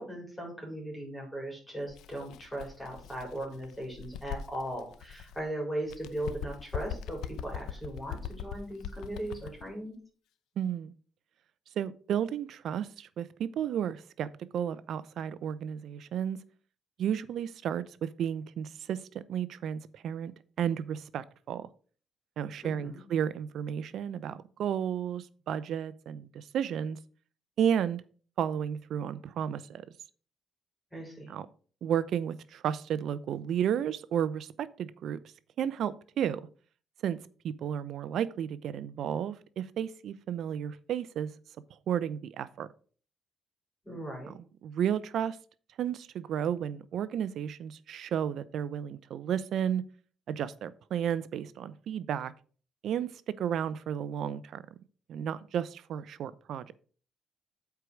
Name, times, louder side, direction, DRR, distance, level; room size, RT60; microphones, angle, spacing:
voice 1, 0.0-10.0 22.6-23.0 30.9-31.3 43.8-44.3, right 1 dB, 10° left, 4.5 m, -38 dB
Bird, 1.9-5.5 5.8-9.7, left 8 dB, 85° left, 0.7 m, -41 dB
voice 2, 10.6-10.9 11.8-14.3 14.5-16.4 17.0-19.0 19.3-20.3 20.6-21.7 22.4-27.0 27.6-28.0 28.4-29.9 31.3-31.5 31.8-35.2 35.6-36.5 37.0-37.2 37.4-41.3 41.9-42.7 44.2-45.4 45.8-49.8 50.3-52.3 52.8-54.6 55.1-56.7, right 9 dB, 70° right, 0.6 m, -32 dB
8.2 x 4.7 x 6.3 m
cardioid pair, 90°, 0 cm